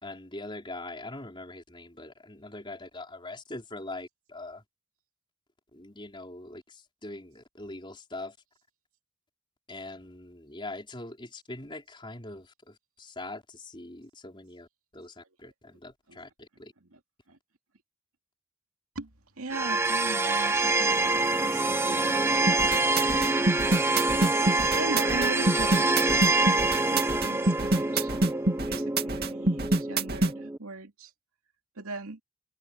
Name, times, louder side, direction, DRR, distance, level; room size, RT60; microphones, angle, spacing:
voice 1, 0.0-4.6 5.7-6.6 7.0-8.3 9.7-12.5 13.0-14.7 14.9-16.7, left 2 dB, 20° left, 4.3 m, -42 dB
voice 2, 19.4-22.8 23.1-23.6 24.3-28.1 28.7-31.1 31.8-32.2, right 3 dB, 75° right, 2.5 m, -40 dB
sound 1, 19.5-30.6, right 2 dB, 10° right, 1.0 m, -26 dB
sound 2, 22.5-30.3, right 2 dB, 45° right, 2.5 m, -26 dB
head